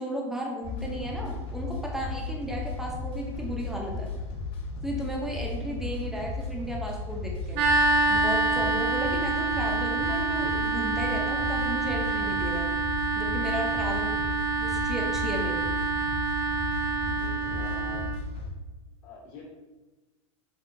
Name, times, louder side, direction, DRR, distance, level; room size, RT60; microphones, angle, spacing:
voice 1, 0.0-4.1 4.8-7.6 8.1-12.7 13.2-15.6, equal, ahead, -1 dB, 0.7 m, -34 dB
sound 1, 0.6-18.5, left 3 dB, 35° left, 0.8 m, -35 dB
sound 2, 7.5-18.2, right 3 dB, 45° right, 0.6 m, -27 dB
voice 2, 17.1-18.1 19.0-19.4, left 5 dB, 55° left, -4 dB, 1.3 m, -45 dB
5.2 x 2.3 x 2.7 m, 1.1 s
hypercardioid pair, 120°, 17 cm